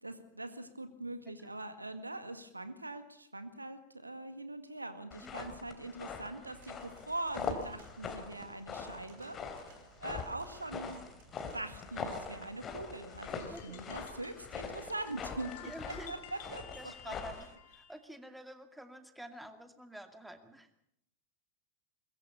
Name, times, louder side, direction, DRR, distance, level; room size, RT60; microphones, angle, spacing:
voice 1, 0.0-9.7 10.0-11.1 11.5-17.1, right 2 dB, 85° right, 10 dB, 1.9 m, -42 dB
sound 1, 5.1-17.5, left 5 dB, 25° left, 3.0 m, -43 dB
voice 2, 5.2-5.6 13.5-13.8 15.6-16.1 16.7-20.7, right 1 dB, 5° right, 7 dB, 2.3 m, -49 dB
sound 2, 6.4-16.4, right 5 dB, 55° right, 5.2 m, -63 dB
sound 3, 13.2-18.0, left 10 dB, 55° left, 2.2 m, -53 dB
22.5 x 22.0 x 7.0 m, 0.74 s
figure-of-eight pair, 90°, 0 cm